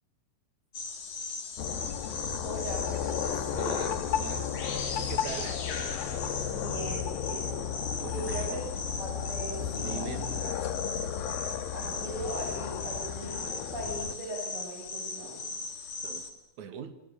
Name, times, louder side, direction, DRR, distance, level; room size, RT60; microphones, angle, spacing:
sound 1, 0.7-16.3, left 4 dB, 55° left, 3.8 m, -38 dB
sound 2, 1.6-14.2, left 9 dB, 90° left, 3.2 m, -34 dB
voice 1, 2.4-3.6 6.4-7.6 8.1-8.6 9.0-10.4 11.7-15.5, right 1 dB, 35° right, 8.7 m, -39 dB
voice 2, 3.5-4.5 5.0-5.6 8.0-8.5 9.8-10.4 16.0-16.3 16.6-16.9, right 8 dB, 60° right, 2.9 m, -40 dB
28.0 x 26.0 x 6.8 m
omnidirectional pair, 4.0 m